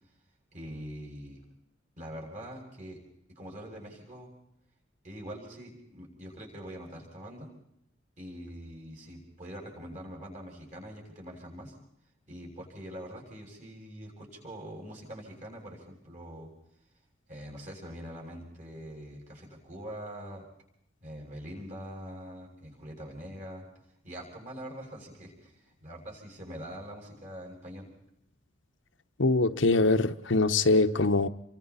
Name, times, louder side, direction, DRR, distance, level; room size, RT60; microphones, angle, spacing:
voice 1, 0.5-1.4 2.0-3.0 3.4-4.3 5.0-7.5 8.2-11.7 12.3-16.5 17.3-20.5 21.0-23.6 24.0-27.9, equal, 40° right, 7.4 m, -43 dB
voice 2, 29.2-31.3, left 3 dB, 75° left, 1.0 m, -23 dB
29.5 x 24.0 x 4.2 m
head